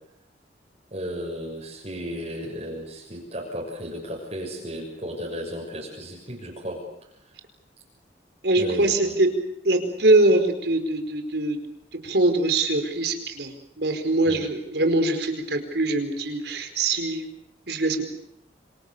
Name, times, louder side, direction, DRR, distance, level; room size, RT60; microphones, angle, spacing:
voice 1, 0.9-6.8 8.6-9.2 14.2-14.4, equal, 35° right, -2 dB, 6.5 m, -34 dB
voice 2, 8.4-9.3 9.6-11.6 12.0-13.5 13.8-17.2 17.7-18.0, right 2 dB, 70° right, 6 dB, 4.7 m, -22 dB
27.5 x 26.5 x 6.9 m, 0.76 s
head